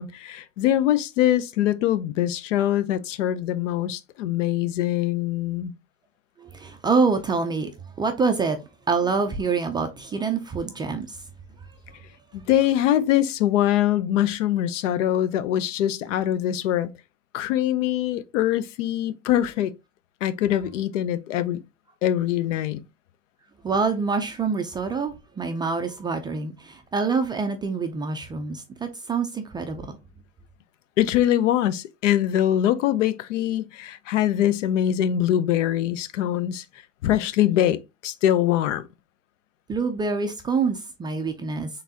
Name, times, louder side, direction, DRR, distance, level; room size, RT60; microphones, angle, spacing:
voice 1, 0.0-5.7 12.3-16.9 17.3-19.7 20.2-21.6 22.0-22.8 31.0-36.6 37.0-38.8, left 12 dB, 75° left, 0.6 m, -23 dB
voice 2, 6.4-7.7 8.0-8.6 8.9-11.2 23.6-30.0 39.7-41.7, right 4 dB, 15° right, 0.3 m, -26 dB
3.9 x 3.7 x 2.7 m
hypercardioid pair, 115°, 38 cm